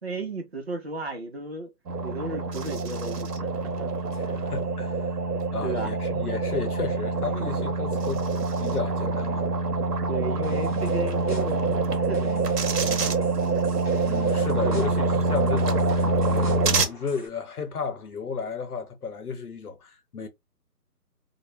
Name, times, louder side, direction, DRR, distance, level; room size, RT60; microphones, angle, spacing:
voice 1, 0.0-1.7 2.0-3.5 3.8-3.9 5.6-5.9 10.1-13.2 14.6-14.9, right 2 dB, 40° right, 0.6 m, -34 dB
sound 1, 1.9-16.9, right 3 dB, 70° right, 0.8 m, -25 dB
voice 2, 4.1-5.2 5.5-8.3 8.6-9.5 14.0-15.9 16.2-20.3, left 5 dB, 65° left, 0.8 m, -33 dB
sound 2, 10.4-17.3, left 2 dB, 30° left, 0.5 m, -46 dB
2.3 x 2.1 x 3.0 m
figure-of-eight pair, 150°, 49 cm